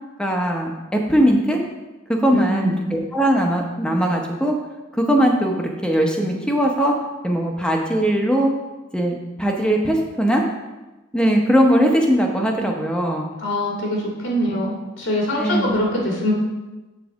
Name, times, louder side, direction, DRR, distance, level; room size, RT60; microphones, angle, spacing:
voice 1, 0.2-1.6 2.1-4.5 4.9-6.9 7.2-8.5 8.9-10.4 11.1-13.3 15.4-15.8, equal, 5° left, 1 dB, 0.8 m, -20 dB
voice 2, 2.3-2.7 13.4-16.3, equal, 80° left, -3 dB, 2.0 m, -23 dB
7.1 x 4.0 x 6.3 m, 1.1 s
head